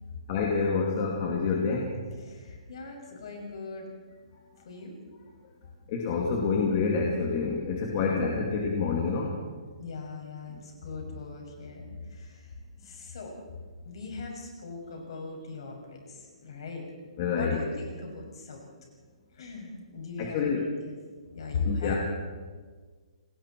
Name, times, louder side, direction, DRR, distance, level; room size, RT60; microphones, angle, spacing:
voice 1, 0.3-1.9 5.9-9.4 17.2-17.6 20.2-20.7 21.7-21.9, left 5 dB, 25° left, -1 dB, 2.2 m, -27 dB
voice 2, 2.2-3.9 4.6-4.9 8.0-8.3 9.8-12.5 12.8-13.3 13.8-16.8 17.3-18.6 19.3-21.0 21.3-22.0, left 4 dB, 50° left, 1 dB, 6.7 m, -39 dB
29.5 x 19.5 x 4.6 m, 1.5 s
hypercardioid pair, 175°, 4 cm